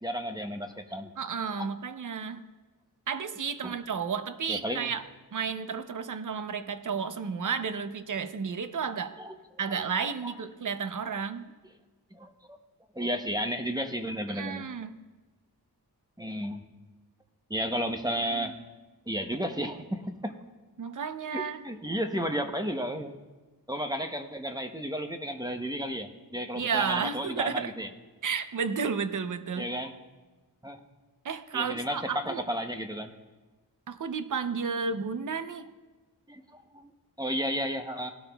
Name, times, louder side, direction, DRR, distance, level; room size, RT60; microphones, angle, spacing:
voice 1, 0.0-1.1 3.6-3.8 4.5-4.9 9.2-9.3 9.7-9.8 10.2-10.3 11.1-11.2 12.1-12.6 12.9-14.7 16.2-16.6 17.5-18.6 19.1-20.3 21.3-23.1 23.7-27.9 29.6-29.9 30.6-30.8 31.5-33.1 36.3-36.9 37.2-38.1, equal, 10° right, 5 dB, 0.8 m, -33 dB
voice 2, 1.2-2.4 3.1-5.0 5.3-9.1 9.6-11.5 14.3-14.9 20.8-21.6 26.6-27.7 28.2-29.7 31.2-32.4 33.9-35.7, right 6 dB, 50° right, 11 dB, 0.7 m, -32 dB
18.5 x 12.0 x 2.3 m, 1.2 s
wide cardioid pair, 85°, 39 cm